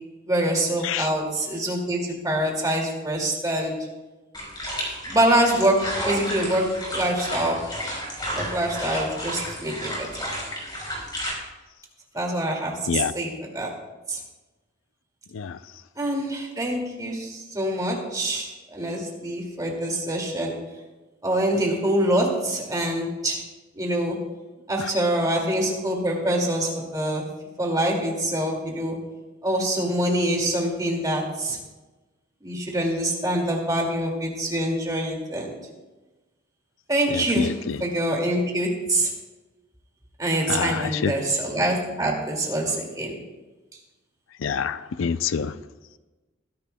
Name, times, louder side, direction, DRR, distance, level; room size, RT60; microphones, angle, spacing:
voice 1, 0.3-3.8 5.0-7.6 8.3-10.3 12.1-13.7 14.1-14.2 16.0-20.5 21.2-23.4 23.7-24.2 24.7-27.3 27.6-29.0 29.4-31.6 32.4-35.6 36.9-37.5 37.8-39.1 40.2-43.2, right 1 dB, 20° right, 0 dB, 2.2 m, -25 dB
sound 1, 4.3-11.3, equal, 25° left, 3.9 m, -32 dB
voice 2, 37.1-37.8 40.5-41.1 44.4-45.5, left 6 dB, 90° left, 14 dB, 0.4 m, -26 dB
21.5 x 10.5 x 2.2 m, 1.2 s
head